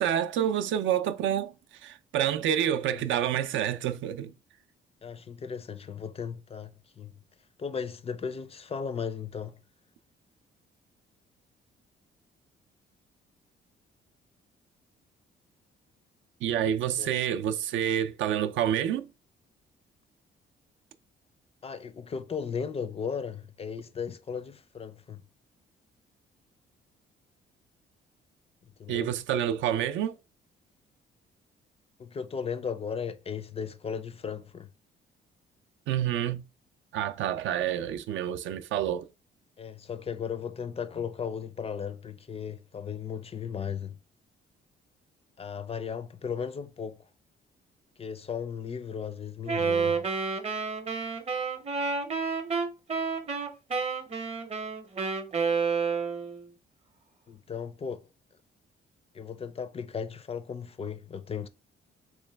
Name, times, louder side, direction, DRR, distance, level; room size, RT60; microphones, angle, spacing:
voice 1, 0.0-1.5 1.8-4.3 16.4-19.1 28.9-30.1 35.9-36.4 36.9-39.1, right 10 dB, 75° right, 0.4 m, -28 dB
voice 2, 5.0-7.2 7.6-9.6 17.0-17.1 21.6-25.2 28.8-29.1 32.0-34.7 39.6-44.0 45.4-47.1 48.0-50.0 57.3-58.0 59.1-61.5, left 6 dB, 30° left, 0.4 m, -36 dB
Wind instrument woodwind instrument, 49.5-56.4, right 5 dB, 30° right, 0.6 m, -30 dB
3.1 x 3.1 x 3.3 m
cardioid pair, 90°, 20 cm